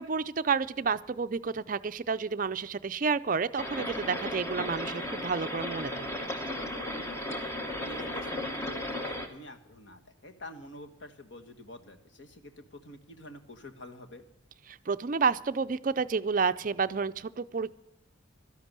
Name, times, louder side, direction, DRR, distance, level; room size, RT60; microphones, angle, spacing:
voice 1, 0.0-6.1 14.7-17.7, right 5 dB, 40° right, 12 dB, 0.4 m, -30 dB
sound 1, 3.6-9.3, left 1 dB, 15° left, 1.2 m, -35 dB
voice 2, 6.9-14.2, left 1 dB, 60° left, 6 dB, 1.5 m, -48 dB
13.0 x 11.0 x 7.4 m, 0.83 s
head